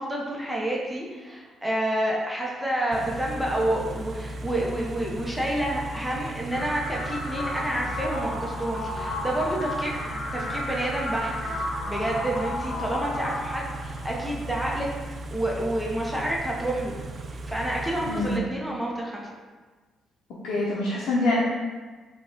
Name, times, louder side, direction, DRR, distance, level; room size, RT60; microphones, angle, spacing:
voice 1, 0.0-10.0 10.3-14.9 15.3-17.0 17.5-19.3, right 1 dB, ahead, -3 dB, 0.7 m, -29 dB
Car / Idling, 2.9-18.4, right 2 dB, 45° right, 0.3 m, -37 dB
sound 1, 6.5-14.5, left 1 dB, 50° left, 1.1 m, -33 dB
voice 2, 18.1-18.4 20.4-21.4, left 2 dB, 85° left, -6 dB, 0.6 m, -25 dB
4.7 x 2.3 x 3.7 m, 1.4 s
cardioid pair, 90°, 0 cm